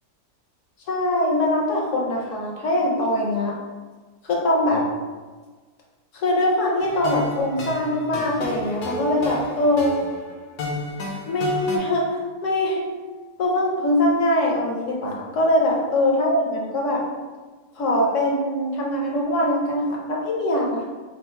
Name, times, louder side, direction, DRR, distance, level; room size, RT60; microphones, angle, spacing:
voice 1, 0.9-3.5 4.3-4.9 6.1-10.0 11.3-12.9 13.4-17.0 17.8-20.9, left 1 dB, 60° left, -1 dB, 0.9 m, -22 dB
sound 1, 6.8-11.8, left 2 dB, 80° left, 1.3 m, -32 dB
4.3 x 2.0 x 4.3 m, 1.4 s
omnidirectional pair, 1.7 m